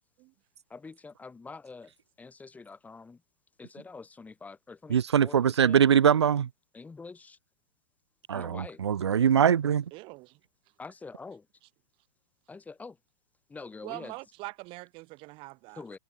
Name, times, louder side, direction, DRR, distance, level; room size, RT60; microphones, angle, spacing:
voice 1, 0.7-3.2 3.6-5.8 6.7-7.4 8.3-8.8 10.8-11.5 12.5-13.0 13.5-14.2 15.7-16.0, left 4 dB, 10° left, 6.8 m, -45 dB
voice 2, 4.9-6.5 8.3-9.8, right 8 dB, 85° right, 0.6 m, -22 dB
voice 3, 9.9-10.4 13.8-16.0, right 24 dB, 40° right, 1.6 m, -43 dB
hypercardioid pair, 115°, 14 cm